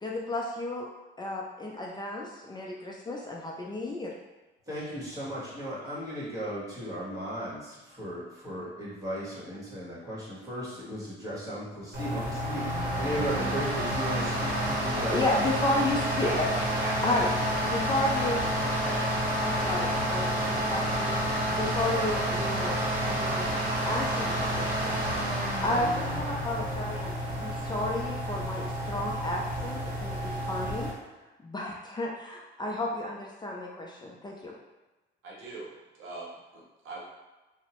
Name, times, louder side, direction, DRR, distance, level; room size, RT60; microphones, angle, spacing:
voice 1, 0.0-0.9 1.2-4.1 15.1-16.5 17.0-17.3 17.7-18.4 19.4-25.3 25.6-30.9 31.4-34.5, left 1 dB, 20° left, -2 dB, 0.4 m, -32 dB
voice 2, 4.7-12.6 12.9-15.4, equal, 15° right, -7 dB, 1.3 m, -36 dB
sound 1, 11.9-30.9, equal, 45° right, 0.8 m, -29 dB
voice 3, 16.2-17.2 18.2-18.3 18.6-19.2 35.2-37.0, right 2 dB, 85° right, -4 dB, 0.7 m, -40 dB
2.6 x 2.0 x 2.9 m, 1.1 s
cardioid pair, 90°, 20 cm